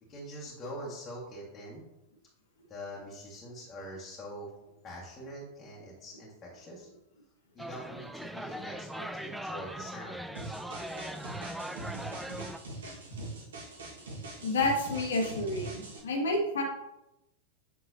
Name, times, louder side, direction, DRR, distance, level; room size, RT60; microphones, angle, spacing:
voice 1, 0.1-1.8 2.7-4.5 4.8-6.9 7.5-10.2, equal, 25° left, -5 dB, 1.6 m, -44 dB
sound 1, 7.6-12.6, right 1 dB, 5° right, 0.4 m, -40 dB
sound 2, 10.4-16.0, right 2 dB, 65° right, 1.5 m, -42 dB
voice 2, 14.4-16.6, left 2 dB, 65° left, 2 dB, 1.5 m, -29 dB
7.8 x 5.5 x 2.7 m, 0.88 s
figure-of-eight pair, 90°, 0 cm